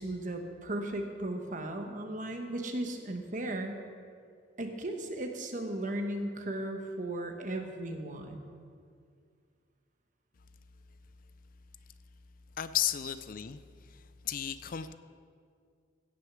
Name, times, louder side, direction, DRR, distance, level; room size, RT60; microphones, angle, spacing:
voice 1, 0.0-3.8 4.6-8.5, right 1 dB, 45° right, 4 dB, 1.2 m, -36 dB
voice 2, 12.6-13.6 13.9-14.9, left 11 dB, 50° left, 13 dB, 0.4 m, -34 dB
16.5 x 6.5 x 6.2 m, 2.2 s
head